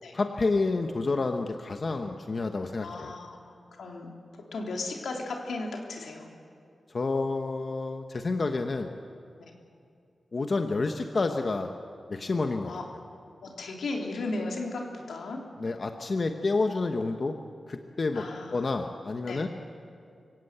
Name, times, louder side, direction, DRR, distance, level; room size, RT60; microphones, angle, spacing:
voice 1, 0.1-3.1 6.9-8.9 10.3-11.7 12.1-12.8 15.6-17.3 17.7-18.2 18.5-19.5, left 3 dB, 45° left, 5 dB, 1.2 m, -29 dB
voice 2, 2.8-6.3 12.6-12.8 13.4-15.4 18.1-18.7 19.3-19.4, left 3 dB, 90° left, 1 dB, 3.2 m, -36 dB
25.0 x 17.0 x 8.2 m, 2.4 s
wide cardioid pair, 85°, 0 cm